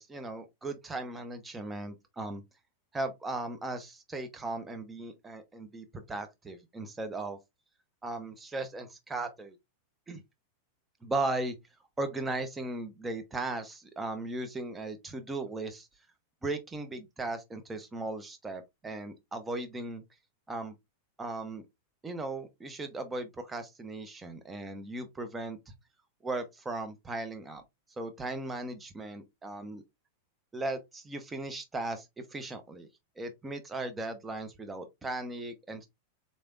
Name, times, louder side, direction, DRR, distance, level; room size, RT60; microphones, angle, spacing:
voice 1, 0.0-2.4 2.9-7.4 8.0-9.6 10.1-10.2 11.0-11.6 12.0-15.9 16.4-20.0 20.5-20.7 21.2-21.6 22.0-25.6 26.2-27.6 28.0-29.8 30.5-32.1 32.3-32.9 33.2-35.9, right 2 dB, 15° right, 0.8 m, -37 dB
4.0 x 3.2 x 2.4 m
figure-of-eight pair, 90°, 0 cm